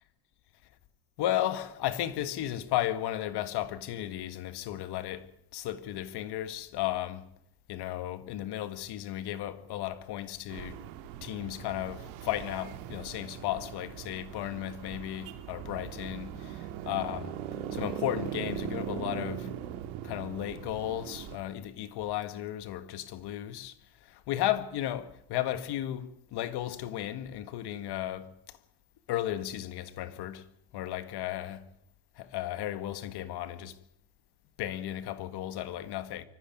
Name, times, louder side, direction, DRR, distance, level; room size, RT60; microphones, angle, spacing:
voice 1, 1.2-5.3 5.5-7.2 7.7-10.8 11.2-16.3 16.8-17.3 17.7-19.5 20.0-23.7 24.1-28.3 29.1-30.4 30.7-31.6 32.2-33.8 34.6-36.2, left 13 dB, 60° left, 1.8 m, -34 dB
sound 1, 10.5-21.4, right 10 dB, 85° right, 2.4 m, -40 dB
25.0 x 14.5 x 9.3 m
cardioid pair, 115°, 44 cm